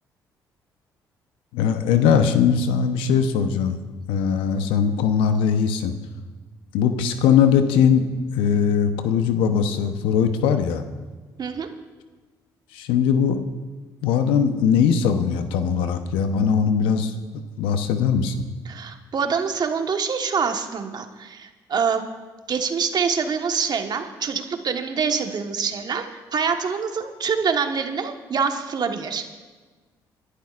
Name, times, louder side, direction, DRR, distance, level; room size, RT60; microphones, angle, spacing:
voice 1, 1.5-3.8 4.1-5.9 6.7-8.1 8.3-10.8 12.7-13.4 14.0-17.1 17.6-18.3, left 7 dB, 80° left, 8 dB, 0.9 m, -20 dB
voice 2, 18.7-22.0 22.5-26.1 26.3-29.2, right 6 dB, 50° right, 5 dB, 1.4 m, -25 dB
28.0 x 11.5 x 2.5 m, 1.3 s
hypercardioid pair, 55°, 9 cm